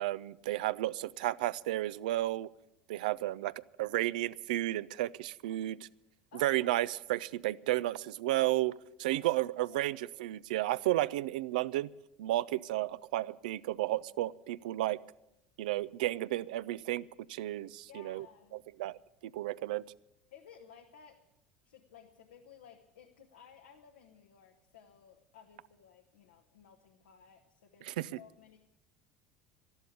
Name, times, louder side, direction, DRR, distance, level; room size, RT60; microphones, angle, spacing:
voice 1, 0.0-2.5 2.9-3.5 3.8-5.9 6.3-11.9 12.2-15.0 15.6-18.2 18.8-19.8 27.8-28.1, right 16 dB, 80° right, 18 dB, 0.4 m, -33 dB
voice 2, 6.3-6.9 9.1-9.2 9.7-9.9 17.9-18.6 20.3-21.2 21.6-28.6, left 8 dB, 90° left, 3 dB, 1.1 m, -57 dB
13.0 x 12.0 x 8.4 m, 0.87 s
hypercardioid pair, 85°, 4 cm